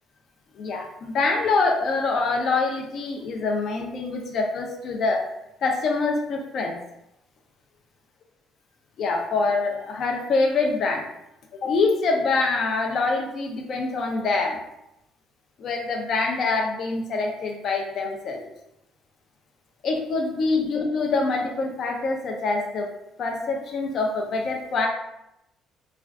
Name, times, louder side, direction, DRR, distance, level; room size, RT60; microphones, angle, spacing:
voice 1, 0.6-5.2 5.6-6.8 9.0-11.0 11.5-14.6 15.6-18.4 19.8-22.9 23.2-24.9, left 3 dB, 45° left, 1 dB, 0.4 m, -25 dB
2.3 x 2.3 x 3.4 m, 0.84 s
cardioid pair, 155°, 0 cm